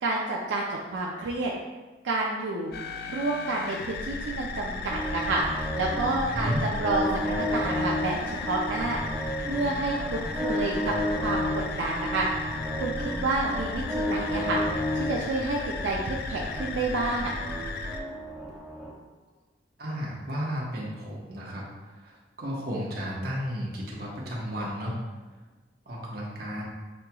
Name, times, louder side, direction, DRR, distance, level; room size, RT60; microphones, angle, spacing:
voice 1, 0.0-1.5 2.0-2.7 3.1-9.0 9.4-12.3 12.7-14.6 14.9-17.3, right 2 dB, 80° right, -2 dB, 0.4 m, -29 dB
sound 1, 2.7-18.0, left 3 dB, 55° left, 0.3 m, -35 dB
sound 2, 4.9-18.9, equal, 5° right, 0.7 m, -32 dB
voice 2, 6.3-6.6 19.8-21.6 22.0-25.0 25.9-26.6, equal, 55° right, -4 dB, 1.0 m, -33 dB
6.1 x 2.9 x 2.2 m, 1.2 s
head